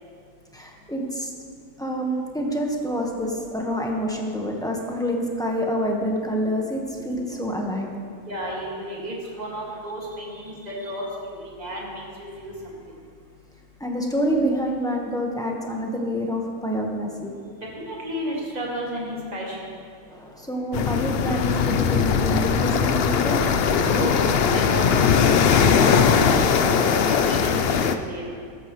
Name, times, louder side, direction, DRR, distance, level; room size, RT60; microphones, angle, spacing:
voice 1, 0.5-1.3 1.8-7.9 10.4-10.5 10.9-11.0 13.8-17.3 20.1-23.4, equal, 5° left, -1 dB, 1.1 m, -27 dB
voice 2, 8.3-12.0 12.4-12.5 17.8-19.7 23.8-26.8 27.1-27.8 28.1-28.3, equal, 30° right, -4 dB, 2.1 m, -32 dB
sound 1, 20.7-28.0, left 6 dB, 60° left, 0.6 m, -20 dB
13.5 x 13.5 x 3.1 m, 2.2 s
omnidirectional pair, 1.6 m